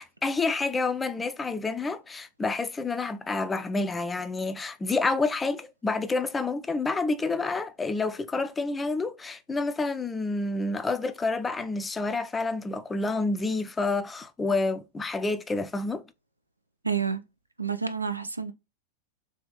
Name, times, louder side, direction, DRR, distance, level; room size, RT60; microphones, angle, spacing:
voice 1, 0.0-16.0, left 3 dB, 15° left, 0.4 m, -29 dB
voice 2, 16.8-17.2 17.6-18.5, right 6 dB, 80° right, 0.4 m, -29 dB
3.4 x 2.8 x 3.1 m
figure-of-eight pair, 90°, 0 cm